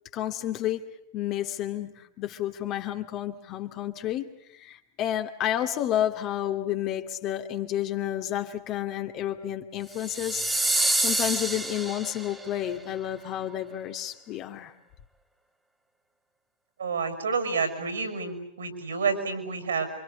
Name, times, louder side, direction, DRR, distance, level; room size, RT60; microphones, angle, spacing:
voice 1, 0.1-10.5 11.0-14.7, left 12 dB, 35° left, 2.3 m, -31 dB
sound 1, 10.0-12.4, right 2 dB, 5° right, 2.2 m, -27 dB
voice 2, 16.8-19.9, right 5 dB, 70° right, 6.1 m, -29 dB
28.5 x 25.5 x 8.2 m
figure-of-eight pair, 90°, 0 cm